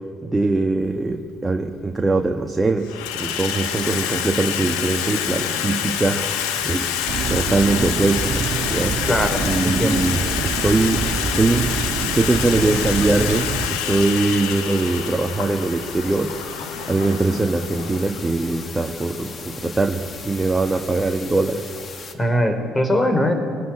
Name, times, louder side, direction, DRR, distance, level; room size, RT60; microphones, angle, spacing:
voice 1, 0.2-6.3 6.6-7.0 7.3-9.0 9.4-11.0 11.3-11.7 12.1-16.3 16.9-21.7, right 3 dB, 20° right, 5 dB, 1.5 m, -22 dB
Water tap faucet / Sink (filling or washing), 0.9-1.0 2.0-2.4 2.7-20.3, left 9 dB, 75° left, 2.0 m, -27 dB
sound 1, 6.3-22.1, left 4 dB, 40° left, 2.4 m, -38 dB
sound 2, 7.1-13.7, right 5 dB, 50° right, 1.6 m, -27 dB
voice 2, 9.1-9.4 9.6-10.0 22.2-23.3, equal, 15° left, 7 dB, 4.3 m, -20 dB
24.0 x 19.5 x 8.8 m, 2.2 s
hypercardioid pair, 55°, 0 cm